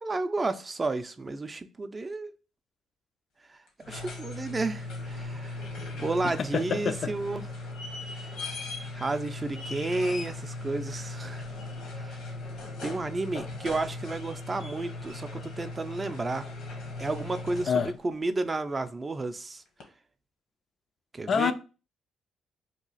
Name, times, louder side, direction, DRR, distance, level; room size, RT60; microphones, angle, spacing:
voice 1, 0.0-2.3 3.5-3.6 3.9-5.6 5.9-7.4 8.9-11.4 11.9-12.2 12.8-16.5 17.0-19.6 21.1-21.5, right 3 dB, 25° right, 0.4 m, -32 dB
sound 1, 3.7-18.1 19.8-19.9, left 2 dB, 80° left, 0.9 m, -38 dB
voice 2, 6.2-7.1 17.7-17.9 21.3-21.5, left 6 dB, 55° left, 0.3 m, -27 dB
2.9 x 2.4 x 3.9 m
cardioid pair, 90°, 0 cm